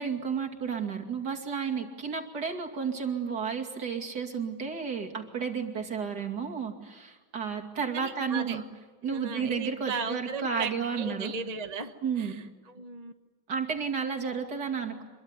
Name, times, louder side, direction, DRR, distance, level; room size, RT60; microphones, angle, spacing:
voice 1, 0.0-8.6 9.0-11.3 12.0-12.3 13.5-15.0, right 6 dB, 55° right, 2 dB, 3.1 m, -32 dB
voice 2, 7.9-8.6 9.1-10.7 10.9-13.1, right 4 dB, 25° right, 6 dB, 1.1 m, -36 dB
26.0 x 23.0 x 9.7 m, 1.3 s
omnidirectional pair, 2.1 m